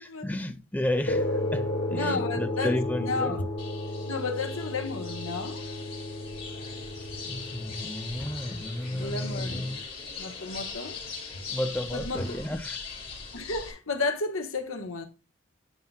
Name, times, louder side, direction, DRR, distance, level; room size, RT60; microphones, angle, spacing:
voice 1, 0.0-3.4 7.2-9.8 11.5-12.9, left 1 dB, 10° left, 0.4 m, -32 dB
sound 1, 1.1-9.8, left 1 dB, 65° left, 1.9 m, -34 dB
voice 2, 1.9-2.7 3.0-3.5 4.1-5.6 8.9-9.7 10.2-11.0 11.9-12.4 13.3-15.1, left 3 dB, 90° left, 1.4 m, -32 dB
sound 2, 3.6-13.7, left 5 dB, 30° left, 4.5 m, -41 dB
10.5 x 5.7 x 2.3 m
head